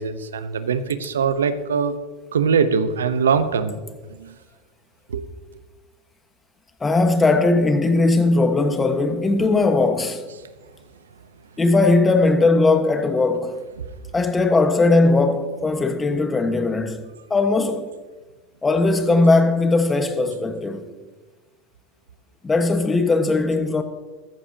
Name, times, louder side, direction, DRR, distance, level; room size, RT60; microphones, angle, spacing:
voice 1, 0.0-1.9 2.3-3.8 4.2-4.3 5.1-5.2 9.4-9.5, right 6 dB, 90° right, 0.8 m, -22 dB
voice 2, 6.8-10.2 11.6-13.6 14.1-17.0 17.3-17.9 18.6-20.8 22.4-23.8, left 3 dB, 20° left, 1.4 m, -19 dB
14.5 x 14.0 x 2.8 m
hypercardioid pair, 95°, 0 cm